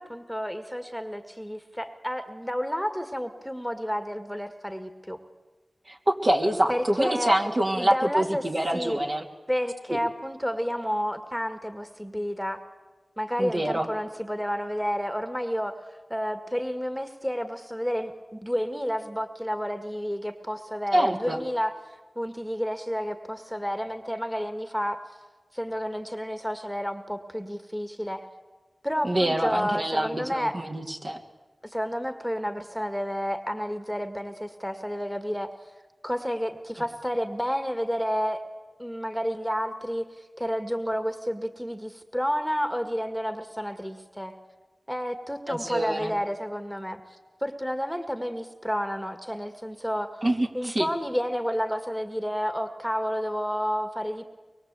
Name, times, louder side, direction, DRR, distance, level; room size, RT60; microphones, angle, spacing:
voice 1, 0.0-5.2 6.7-7.3 7.8-8.4 8.7-9.0 9.5-12.6 13.2-15.7 16.1-21.7 22.2-25.0 25.5-28.3 28.8-30.5 31.6-35.5 36.0-38.4 38.8-40.1 40.4-44.3 44.9-47.0 47.4-50.1 50.5-54.2, equal, ahead, 8 dB, 1.8 m, -30 dB
voice 2, 5.9-9.2 9.9-10.0 13.4-13.9 20.9-21.4 29.0-31.2 45.5-46.1 50.2-50.9, right 1 dB, 45° right, 2 dB, 2.8 m, -26 dB
24.0 x 22.0 x 8.3 m, 1.3 s
wide cardioid pair, 50°, 0 cm